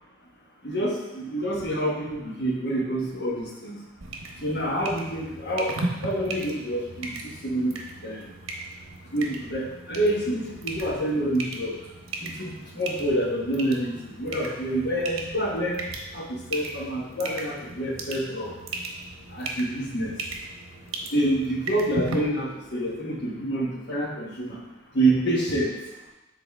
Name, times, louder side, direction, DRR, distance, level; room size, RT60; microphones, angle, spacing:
voice 1, 0.6-3.8 4.4-7.2 7.4-7.7 8.0-8.3 9.1-11.8 12.2-15.9 16.1-18.5 19.3-20.1 21.1-24.6 24.9-25.7, right 1 dB, 50° left, -3 dB, 1.2 m, -27 dB
sound 1, 4.0-22.2, right 2 dB, 80° right, 0.9 m, -37 dB
6.7 x 4.1 x 3.5 m, 0.99 s
head